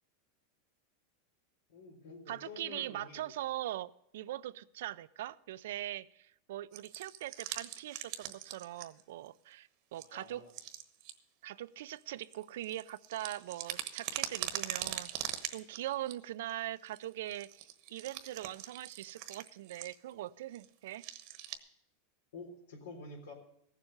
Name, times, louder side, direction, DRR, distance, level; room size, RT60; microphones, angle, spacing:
voice 1, 1.7-3.2 10.0-10.5 22.3-23.3, left 3 dB, 90° left, 2 dB, 3.6 m, -49 dB
voice 2, 2.3-10.4 11.4-15.1 15.5-21.0, right 14 dB, 75° right, 17 dB, 0.4 m, -41 dB
sound 1, 6.7-9.0 9.3-9.4 10.0-10.1 10.5-11.1 11.9-16.1 16.5-16.6 16.8-20.1 20.5-20.7 20.9-21.6, right 12 dB, 60° right, 1.1 m, -42 dB
15.0 x 7.4 x 6.4 m, 0.77 s
supercardioid pair, 125°, 0 cm